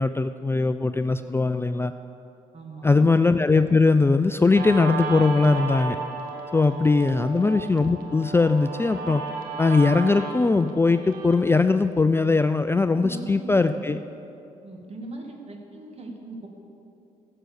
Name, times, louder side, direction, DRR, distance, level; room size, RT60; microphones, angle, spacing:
voice 1, 0.0-1.9 2.8-6.0 6.5-9.2 9.6-14.0, left 3 dB, 15° left, 10 dB, 0.4 m, -20 dB
voice 2, 2.5-3.0 12.9-13.5 14.6-16.5, right 2 dB, 45° right, 2 dB, 2.2 m, -39 dB
Guitar, 4.6-11.5, right 4 dB, 80° right, 1.3 m, -34 dB
12.5 x 7.7 x 6.9 m, 2.7 s
supercardioid pair, 60°, 15 cm